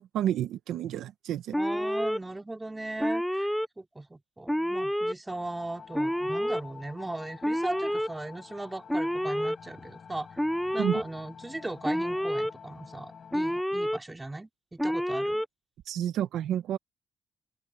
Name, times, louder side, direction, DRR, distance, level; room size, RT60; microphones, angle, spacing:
voice 1, 0.0-1.5 10.8-11.0 15.9-16.8, right 11 dB, 80° right, 1.3 m, -30 dB
Alarm, 1.5-2.2 3.0-3.7 4.5-5.1 5.9-6.6 7.4-8.1 8.9-9.6 10.4-11.0 11.8-12.5 13.3-14.0 14.8-15.5, equal, ahead, 0.7 m, -28 dB
voice 2, 1.6-3.5 3.8-10.4 10.7-15.4, right 2 dB, 15° right, 3.5 m, -38 dB
sound 1, 5.3-13.6, left 6 dB, 50° left, 6.4 m, -49 dB
open air
cardioid pair, 90°, 0 cm